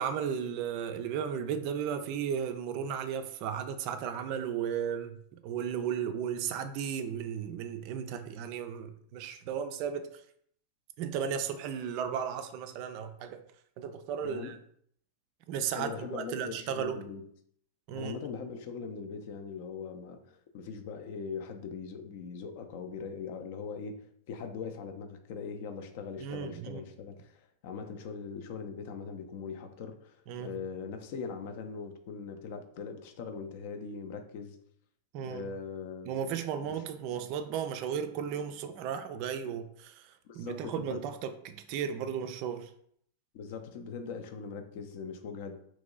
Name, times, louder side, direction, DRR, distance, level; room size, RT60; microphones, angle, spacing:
voice 1, 0.0-10.1 11.0-13.4 13.8-14.6 15.5-17.0 17.9-18.2 26.2-26.8 30.3-30.5 35.1-35.5 36.1-42.7, right 8 dB, 45° right, 0.3 m, -35 dB
voice 2, 14.2-14.6 15.8-17.3 17.9-34.6 35.2-36.1 36.6-36.8 39.4-39.5 40.2-41.1 43.3-45.6, left 5 dB, 50° left, 0.4 m, -41 dB
3.0 x 2.7 x 3.7 m
figure-of-eight pair, 90°, 0 cm